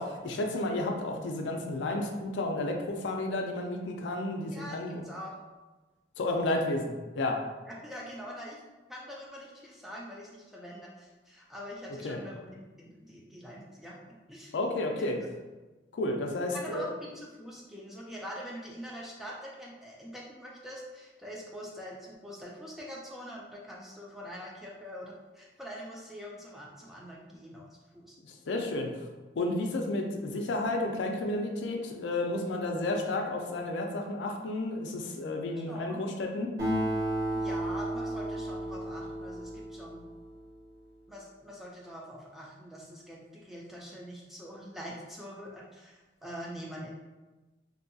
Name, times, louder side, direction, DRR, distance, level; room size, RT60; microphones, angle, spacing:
voice 1, 0.0-5.0 6.2-7.4 12.0-12.2 14.5-15.2 15.9-16.8 28.2-29.1 29.4-36.5, left 2 dB, 75° left, 2 dB, 0.4 m, -32 dB
voice 2, 4.4-5.3 6.5-6.6 7.7-8.6 8.9-14.5 16.5-28.2 35.7-36.6 37.3-40.0 41.1-46.9, equal, ahead, -4 dB, 0.3 m, -44 dB
Acoustic guitar, 36.6-40.4, right 1 dB, 60° right, 1.0 m, -33 dB
2.6 x 2.2 x 2.6 m, 1.2 s
head